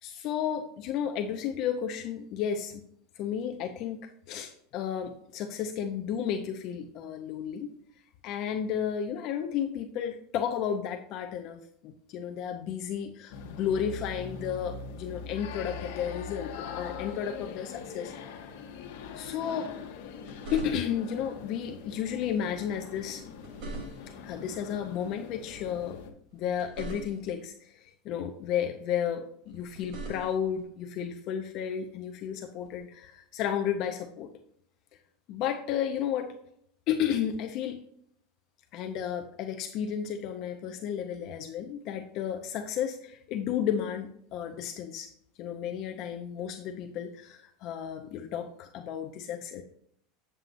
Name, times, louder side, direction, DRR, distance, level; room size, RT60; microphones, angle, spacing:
voice 1, 0.0-2.8 3.2-7.7 8.2-18.1 19.1-19.7 20.5-23.2 24.2-26.0 26.3-34.3 35.3-36.3 36.9-37.8 38.7-45.1 45.4-49.6, left 8 dB, 45° left, 5 dB, 0.7 m, -33 dB
sound 1, 13.3-26.1, left 5 dB, 75° left, 1.3 m, -42 dB
sound 2, 20.0-21.1 23.1-24.3 26.3-27.5 29.4-30.6 32.6-32.8, right 2 dB, 45° right, 3.2 m, -42 dB
8.7 x 7.7 x 2.6 m, 0.67 s
supercardioid pair, 160°, 0 cm